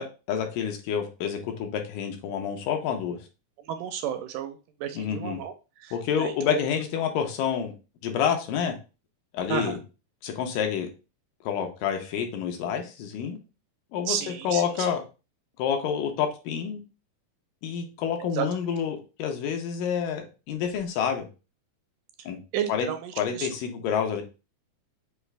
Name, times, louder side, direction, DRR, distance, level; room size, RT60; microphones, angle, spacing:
voice 1, 0.0-3.2 4.9-5.4 5.9-7.7 8.0-8.8 9.3-9.8 10.2-10.9 11.4-13.4 13.9-15.0 15.6-16.8 17.6-21.3 22.3-22.4 22.7-22.9 23.2-24.2, left 8 dB, 80° left, 4 dB, 2.3 m, -28 dB
voice 2, 3.6-5.5 5.8-6.6 9.5-9.8 14.1-14.9 18.2-18.5 22.2-22.3 22.5-23.5, right 9 dB, 80° right, 7 dB, 2.0 m, -32 dB
5.8 x 2.4 x 3.2 m, 0.31 s
omnidirectional pair, 4.0 m